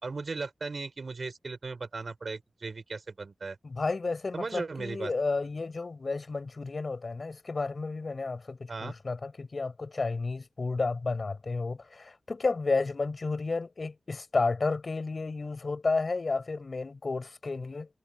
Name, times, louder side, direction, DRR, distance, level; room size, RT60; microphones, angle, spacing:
voice 1, 0.0-3.6 4.3-5.1 8.7-8.9, right 4 dB, 70° right, 4.5 m, -37 dB
voice 2, 3.6-17.9, left 3 dB, 60° left, 4.9 m, -32 dB
cardioid pair, 55°, 0 cm